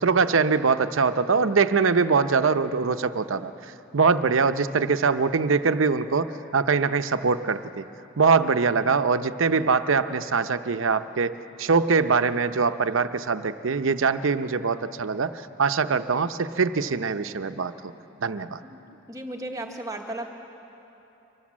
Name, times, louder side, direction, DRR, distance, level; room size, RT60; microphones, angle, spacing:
voice 1, 0.0-3.5 3.9-7.8 8.2-17.9 18.2-18.6, right 5 dB, 75° right, 11 dB, 0.7 m, -23 dB
voice 2, 19.1-20.3, right 1 dB, 15° right, 2 dB, 1.1 m, -35 dB
24.5 x 19.0 x 7.4 m, 3.0 s
head